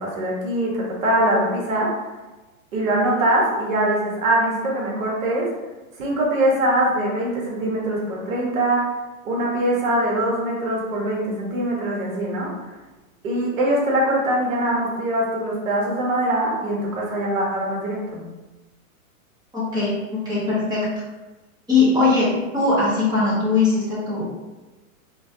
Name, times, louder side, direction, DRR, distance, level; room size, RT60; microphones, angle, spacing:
voice 1, 0.0-1.9 2.7-5.5 6.0-8.9 9.2-12.5 13.2-18.2, right 1 dB, 70° right, -3 dB, 1.5 m, -22 dB
voice 2, 19.5-20.9 21.7-24.3, left 3 dB, 10° right, -9 dB, 1.4 m, -20 dB
4.5 x 3.0 x 2.8 m, 1.2 s
supercardioid pair, 150°, 42 cm